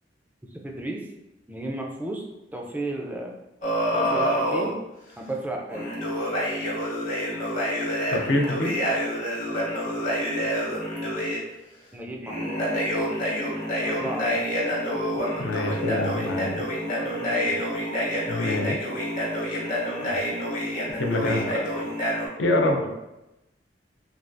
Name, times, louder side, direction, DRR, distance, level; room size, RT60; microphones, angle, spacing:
voice 1, 0.5-1.1 1.5-2.2 2.5-3.3 3.9-4.8 5.2-5.8 11.9-12.4 13.8-14.5 16.9-17.7 20.1-20.2 21.3-21.5 22.8-22.9, right 2 dB, 10° right, 0 dB, 0.3 m, -34 dB
sound 1, 3.6-4.7 5.7-11.4 12.3-22.3, equal, 45° left, 0.9 m, -27 dB
voice 2, 8.1-8.8 15.4-16.6 18.3-18.8 21.0-21.9 22.4-22.8, left 1 dB, 70° left, 2 dB, 0.5 m, -25 dB
3.4 x 2.3 x 2.5 m, 0.96 s
head